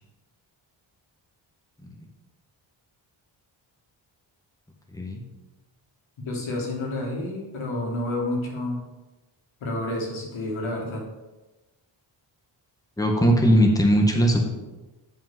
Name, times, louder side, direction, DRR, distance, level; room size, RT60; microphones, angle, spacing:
voice 1, 4.9-5.2 13.0-14.4, equal, 5° left, 1 dB, 1.7 m, -19 dB
voice 2, 6.2-8.8 9.6-11.0, left 1 dB, 80° left, -1 dB, 2.3 m, -29 dB
7.1 x 5.6 x 6.1 m, 1.1 s
cardioid pair, 60°, 47 cm